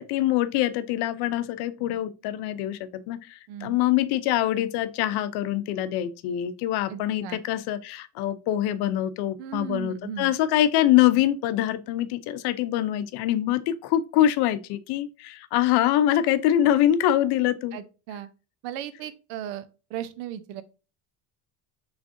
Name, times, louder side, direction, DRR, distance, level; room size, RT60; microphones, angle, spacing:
voice 1, 0.0-17.8, left 12 dB, 60° left, 0.6 m, -24 dB
voice 2, 3.5-3.8 6.9-7.4 9.4-10.3 17.7-18.3 18.6-20.6, right 11 dB, 85° right, 0.7 m, -36 dB
6.1 x 3.3 x 2.5 m
cardioid pair, 155°, 43 cm